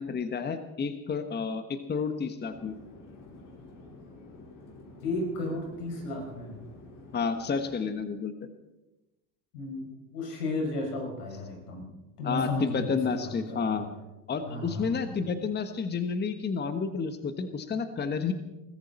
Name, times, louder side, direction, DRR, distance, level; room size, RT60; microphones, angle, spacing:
voice 1, 0.0-2.8 7.1-8.3 12.2-13.9 14.3-18.3, left 5 dB, 20° left, 9 dB, 1.3 m, -30 dB
Chatter / Fixed-wing aircraft airplane, 2.5-7.9, left 2 dB, 45° left, 4.7 m, -49 dB
voice 2, 5.0-6.5 9.5-11.9 12.2-13.9 14.4-15.2, left 2 dB, 90° left, 1 dB, 6.3 m, -34 dB
22.0 x 14.5 x 4.3 m, 1.0 s
supercardioid pair, 100°, 45 cm